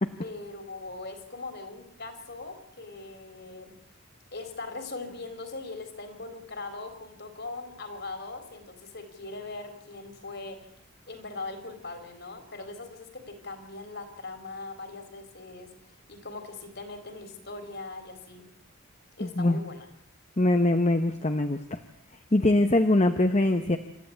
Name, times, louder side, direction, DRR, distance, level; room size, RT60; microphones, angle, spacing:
voice 1, 0.2-3.7 4.3-10.7 11.1-18.5 19.2-19.9, left 3 dB, 50° left, 7 dB, 3.7 m, -40 dB
voice 2, 19.2-19.6 20.4-21.8 22.3-23.8, left 1 dB, 30° left, 7 dB, 0.9 m, -23 dB
27.5 x 14.0 x 8.7 m, 0.76 s
head